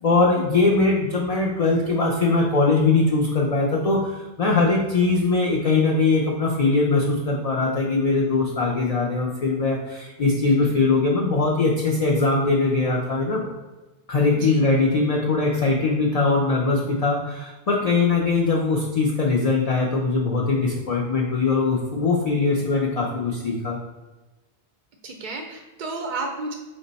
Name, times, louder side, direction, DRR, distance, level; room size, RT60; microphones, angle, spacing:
voice 1, 0.0-13.4 14.1-23.8, left 3 dB, 50° left, -2 dB, 0.5 m, -21 dB
voice 2, 10.4-10.8 14.3-14.6 25.0-26.5, right 3 dB, 55° right, 2 dB, 0.5 m, -32 dB
5.1 x 2.1 x 3.9 m, 1.2 s
omnidirectional pair, 1.1 m